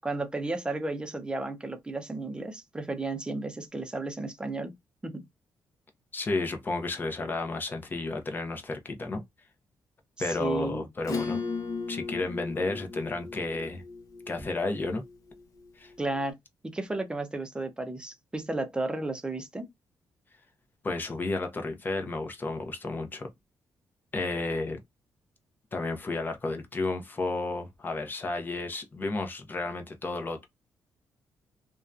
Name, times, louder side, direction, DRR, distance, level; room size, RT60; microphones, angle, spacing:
voice 1, 0.0-4.7 5.0-5.2 10.3-10.8 16.0-16.4 16.6-19.7, right 2 dB, 15° right, 0.6 m, -33 dB
voice 2, 6.1-9.2 10.2-11.4 11.9-13.8 14.3-15.0 15.8-15.9 20.8-23.3 24.1-24.8 25.7-30.5, left 3 dB, 30° left, 0.7 m, -32 dB
Acoustic guitar / Strum, 11.0-16.0, left 4 dB, 55° left, 1.1 m, -37 dB
2.7 x 2.2 x 2.4 m
cardioid pair, 100°, 7 cm